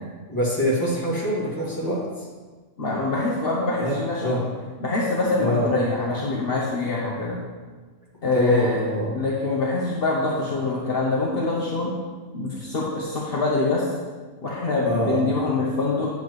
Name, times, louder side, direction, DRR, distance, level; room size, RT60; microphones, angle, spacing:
voice 1, 0.3-2.3 3.8-4.4 5.4-5.7 8.3-9.1 14.8-15.2, equal, 20° left, -6 dB, 2.2 m, -24 dB
voice 2, 2.8-4.5 4.8-7.4 8.2-8.8 9.1-11.9 12.3-13.9 14.4-16.1, left 3 dB, 60° left, -4 dB, 1.2 m, -24 dB
9.1 x 7.4 x 3.1 m, 1.4 s
omnidirectional pair, 1.2 m